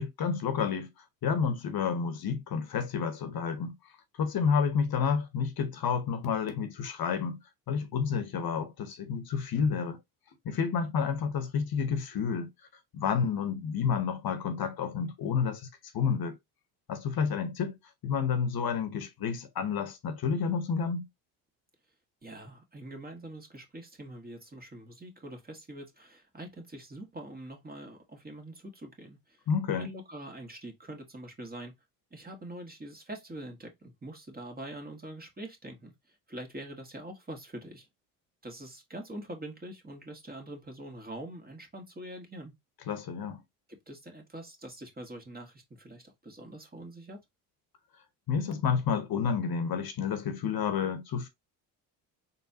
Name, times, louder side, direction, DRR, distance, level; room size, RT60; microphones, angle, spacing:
voice 1, 0.0-3.8 4.2-7.4 7.7-10.0 10.4-12.5 12.9-15.7 15.9-16.4 16.9-17.8 18.0-21.1 29.5-29.9 42.9-43.4 48.3-51.3, left 6 dB, 50° left, 1.1 m, -30 dB
voice 2, 22.2-29.4 29.8-31.7 32.1-37.9 38.4-42.5 43.9-47.2, right 1 dB, 20° right, 1.9 m, -44 dB
3.9 x 3.7 x 2.8 m
hypercardioid pair, 65°, 46 cm